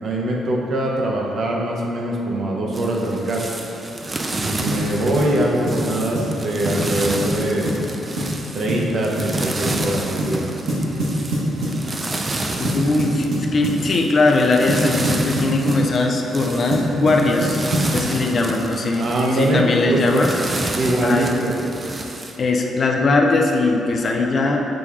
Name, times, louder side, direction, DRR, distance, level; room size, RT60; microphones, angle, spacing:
voice 1, 0.0-3.4 4.4-7.7 8.5-10.4 18.9-20.3 20.7-21.5, right 1 dB, 55° right, -2 dB, 0.7 m, -22 dB
sound 1, 2.7-22.4, right 2 dB, 25° right, 0.3 m, -30 dB
sound 2, 4.7-4.9 5.2-5.3 5.7-5.9 6.1-6.3 6.7-6.9 7.2-7.3 7.7-7.8 8.2-8.4 8.7-8.9 9.2-9.4 9.7-9.8 10.2-10.4 10.7-11.8 12.6-13.8 14.7-15.9 16.7-18.0, right 1 dB, 80° right, 1.1 m, -24 dB
voice 2, 12.6-20.3 20.7-21.3 22.4-24.7, left 3 dB, 45° left, 2 dB, 0.4 m, -20 dB
6.0 x 2.3 x 3.5 m, 3.0 s
cardioid pair, 90°, 0 cm